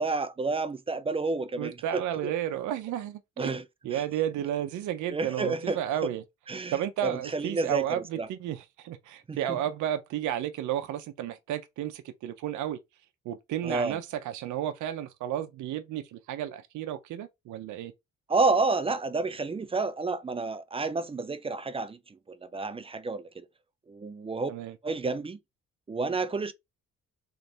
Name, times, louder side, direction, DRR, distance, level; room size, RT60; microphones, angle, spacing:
voice 1, 0.0-2.3 3.4-4.0 5.1-6.1 6.5-6.8 7.0-8.3 9.3-9.6 13.6-14.0 18.3-23.4 23.9-24.5 24.8-25.4 25.9-26.5, right 3 dB, 20° right, 0.4 m, -30 dB
voice 2, 1.6-3.5 3.8-6.2 6.7-12.8 13.2-17.9 24.5-24.8, right 11 dB, 80° right, 0.6 m, -32 dB
3.2 x 3.1 x 2.8 m
cardioid pair, 90°, 30 cm